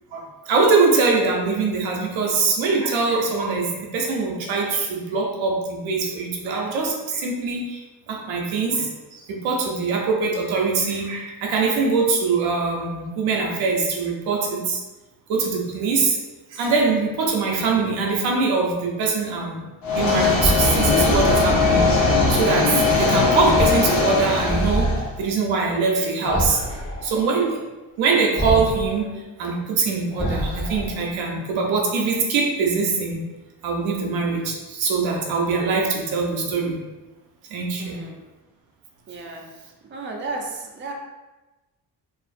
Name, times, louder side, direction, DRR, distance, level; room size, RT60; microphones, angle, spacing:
voice 1, 0.1-14.8 15.3-16.2 16.5-19.6 19.9-24.9 25.2-26.6 27.0-27.6 28.0-29.1 29.4-33.2 33.6-36.8 37.5-38.0, right 4 dB, 75° right, 0 dB, 0.7 m, -23 dB
sound 1, 19.8-25.0, left 4 dB, 50° left, 0.7 m, -20 dB
sound 2, 20.4-22.4 23.5-23.9 24.2-25.0 26.2-27.1 28.4-28.9 30.1-31.0, right 1 dB, 10° left, 1.0 m, -25 dB
voice 2, 37.8-38.2 39.1-39.5 39.9-40.9, right 3 dB, 25° right, 0 dB, 0.5 m, -33 dB
2.5 x 2.4 x 2.4 m, 1.1 s
supercardioid pair, 60°, 47 cm